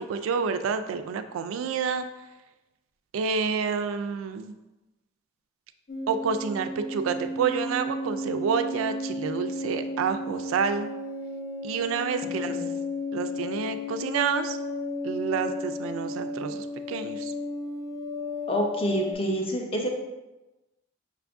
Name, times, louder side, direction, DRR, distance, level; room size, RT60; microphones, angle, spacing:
voice 1, 0.0-2.0 3.1-4.5 6.1-10.9 11.6-12.6 13.1-14.6 15.0-17.3, right 6 dB, 85° right, 9 dB, 0.3 m, -29 dB
sound 1, 5.9-19.1, left 2 dB, 55° left, 0.9 m, -34 dB
voice 2, 18.5-20.0, equal, 30° left, 2 dB, 0.6 m, -27 dB
5.8 x 2.5 x 3.4 m, 1.0 s
head